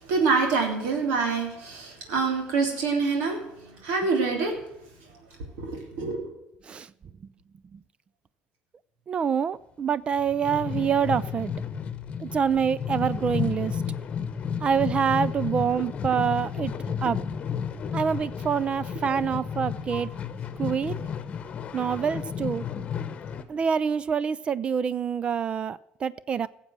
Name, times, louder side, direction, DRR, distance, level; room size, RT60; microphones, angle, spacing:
voice 1, 0.0-4.5 5.6-6.2 19.0-19.4 19.9-20.0, right 4 dB, 85° right, 3.2 m, -26 dB
voice 2, 9.1-11.5 12.2-13.7 14.6-16.7 17.0-17.2 17.9-20.1 20.6-21.0 21.7-22.6 23.5-26.5, right 7 dB, 35° right, 0.4 m, -26 dB
sound 1, 10.1-23.4, left 7 dB, 40° left, 1.0 m, -32 dB
14.0 x 7.4 x 7.3 m
cardioid pair, 115°, 3 cm